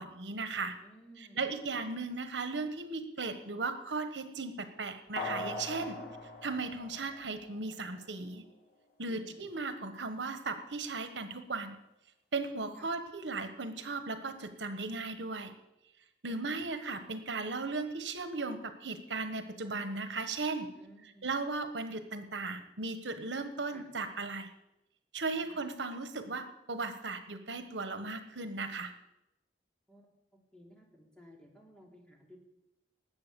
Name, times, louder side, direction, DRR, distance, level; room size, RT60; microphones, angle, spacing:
voice 1, 0.0-0.8 1.2-6.0 6.4-8.4 9.0-11.8 12.3-15.5 16.2-20.7 21.0-24.5 25.1-28.9, right 3 dB, 85° right, 9 dB, 1.3 m, -37 dB
voice 2, 0.8-1.4 1.7-1.8 5.8-6.1 9.1-9.4 12.8-12.9 16.3-16.4 20.7-21.3 23.7-23.8 25.5-25.6 29.9-30.1 30.5-32.4, equal, 5° left, 0 dB, 3.0 m, -56 dB
sound 1, 5.2-7.7 8.1-8.2, left 2 dB, 60° left, 3.4 m, -41 dB
19.5 x 7.9 x 7.0 m, 0.90 s
head